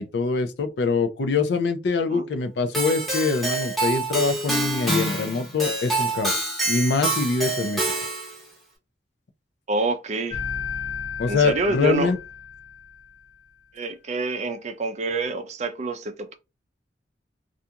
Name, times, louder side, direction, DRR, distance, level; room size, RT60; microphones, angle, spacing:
voice 1, 0.0-6.3 6.7-7.8 11.2-12.2, left 4 dB, 70° left, 0.4 m, -24 dB
Keyboard (musical), 2.7-8.4, right 2 dB, ahead, 0.9 m, -26 dB
voice 2, 9.7-10.4 11.3-12.2 13.7-16.4, right 2 dB, 40° right, 0.4 m, -27 dB
sound 1, 10.3-13.2, left 7 dB, 25° left, 0.7 m, -34 dB
2.4 x 2.3 x 2.8 m
head